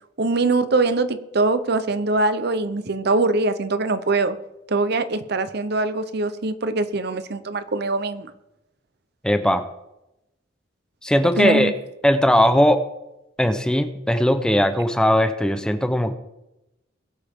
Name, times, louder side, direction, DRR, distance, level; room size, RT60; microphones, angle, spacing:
voice 1, 0.2-4.4 4.7-8.3 11.4-11.7, right 3 dB, 60° right, 12 dB, 0.8 m, -22 dB
voice 2, 9.2-9.6 11.0-11.7 12.0-12.8 13.4-16.1, equal, 5° left, 9 dB, 0.8 m, -19 dB
21.0 x 8.4 x 3.7 m, 0.90 s
head